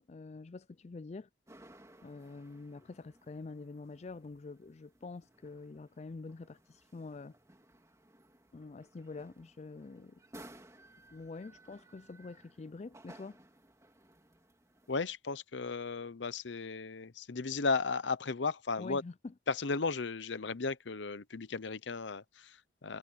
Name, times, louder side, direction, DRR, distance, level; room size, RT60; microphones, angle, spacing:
voice 1, 0.1-1.3 2.0-7.3 8.5-10.2 11.1-13.4 18.8-19.1, left 3 dB, 35° left, 0.4 m, -46 dB
sound 1, 1.5-15.0, right 1 dB, 15° right, 2.9 m, -59 dB
voice 2, 14.9-19.0 19.5-23.0, left 4 dB, 75° left, 0.8 m, -35 dB
head